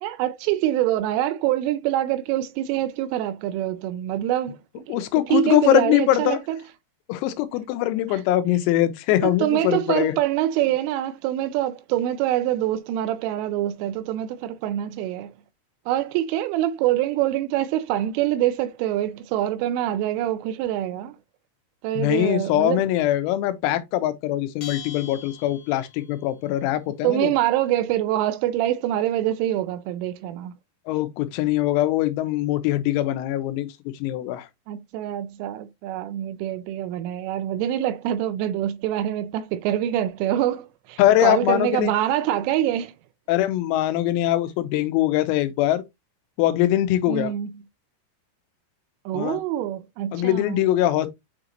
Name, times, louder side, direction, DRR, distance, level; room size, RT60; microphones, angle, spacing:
voice 1, 0.0-5.0 5.3-6.6 8.1-8.2 9.2-15.3 15.9-21.2 21.8-22.8 27.0-30.5 34.7-42.9 47.1-47.5 49.1-50.6, right 12 dB, 80° right, 3.0 m, -25 dB
voice 2, 4.9-6.4 7.1-10.1 22.0-27.3 30.9-33.7 34.0-34.5 41.0-41.9 43.3-45.8 46.4-47.3 49.1-49.4 50.1-51.1, left 14 dB, 90° left, 3.6 m, -22 dB
Bell, 24.6-26.2, left 8 dB, 70° left, 1.6 m, -41 dB
8.9 x 3.8 x 2.9 m
omnidirectional pair, 6.0 m